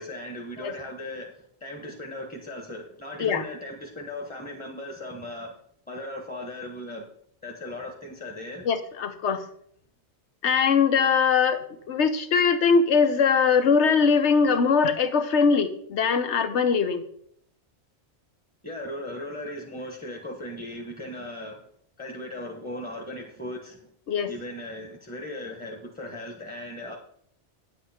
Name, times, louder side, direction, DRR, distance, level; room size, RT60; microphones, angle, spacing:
voice 1, 0.0-5.5 5.9-7.1 7.4-8.6 18.6-21.6 22.0-23.8 24.3-27.0, left 1 dB, 10° left, 1 dB, 1.2 m, -37 dB
voice 2, 8.6-9.4 10.4-11.6 11.9-17.0 24.1-24.3, left 5 dB, 75° left, 10 dB, 1.2 m, -21 dB
9.6 x 8.0 x 4.3 m, 0.67 s
omnidirectional pair, 1.2 m